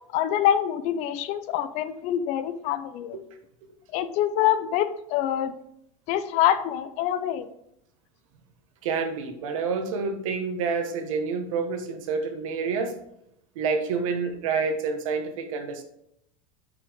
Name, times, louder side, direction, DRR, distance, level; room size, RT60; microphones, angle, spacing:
voice 1, 0.1-3.2 3.9-5.5 6.1-7.5, left 11 dB, 40° left, 12 dB, 0.5 m, -25 dB
voice 2, 8.8-12.9 13.5-15.8, right 5 dB, 80° right, 7 dB, 1.4 m, -28 dB
8.3 x 5.6 x 3.6 m, 0.76 s
supercardioid pair, 160°, 17 cm